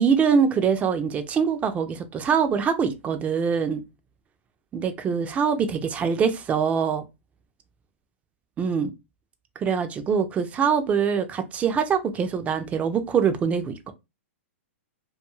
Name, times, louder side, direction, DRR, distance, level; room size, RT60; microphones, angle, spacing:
voice 1, 0.0-3.8 4.7-7.0 8.6-8.9 9.6-13.9, right 6 dB, 20° right, 0.4 m, -23 dB
2.5 x 2.3 x 2.9 m
hypercardioid pair, 125°, 7 cm